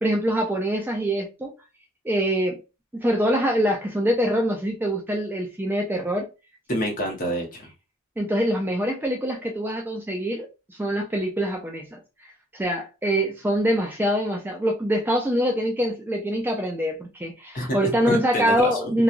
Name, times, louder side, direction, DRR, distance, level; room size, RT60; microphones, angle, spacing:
voice 1, 0.0-1.5 2.0-2.6 2.9-6.3 8.2-10.5 10.8-12.0 12.5-19.0, equal, 10° right, 0.4 m, -24 dB
voice 2, 6.7-7.7 17.5-17.7 18.0-18.9, equal, 40° left, 1.0 m, -27 dB
3.0 x 2.3 x 2.4 m
head